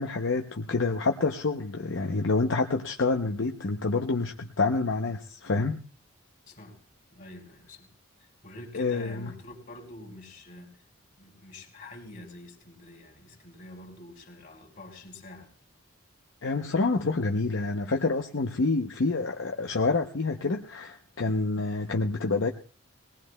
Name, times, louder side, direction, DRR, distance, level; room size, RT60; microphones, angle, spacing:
voice 1, 0.0-5.8 8.7-9.3 16.4-22.5, left 3 dB, 60° left, 0.7 m, -27 dB
voice 2, 6.5-6.8 7.1-7.9 8.2-10.8 11.2-15.5 18.3-18.4, left 1 dB, 40° left, 2.8 m, -46 dB
21.0 x 19.0 x 2.2 m
head